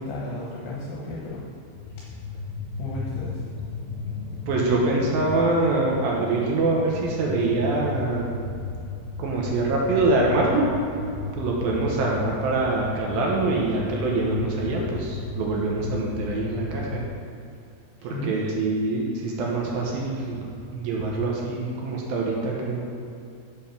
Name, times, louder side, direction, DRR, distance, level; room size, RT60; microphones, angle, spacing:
voice 1, 0.0-1.4 2.8-3.4 18.1-18.3, left 2 dB, 80° left, -5 dB, 3.0 m, -33 dB
sound 1, 1.7-17.2, left 4 dB, 60° left, 3.5 m, -35 dB
voice 2, 4.5-8.3 9.2-10.7 11.3-17.0 18.0-22.9, right 2 dB, 75° right, -2 dB, 2.2 m, -24 dB
7.4 x 5.1 x 5.9 m, 2.6 s
omnidirectional pair, 5.0 m